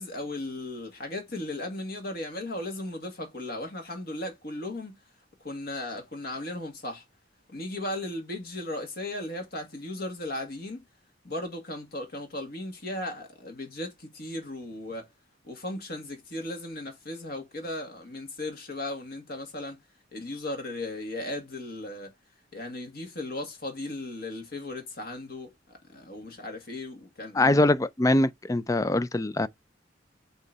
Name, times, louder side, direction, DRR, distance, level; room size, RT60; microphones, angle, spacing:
voice 1, 0.0-5.0 5.4-7.0 7.5-10.8 11.2-15.1 15.4-19.8 20.1-22.1 22.5-27.6, left 1 dB, 55° left, 2.0 m, -36 dB
voice 2, 27.3-29.5, left 2 dB, 20° left, 0.4 m, -23 dB
8.1 x 3.0 x 3.9 m
head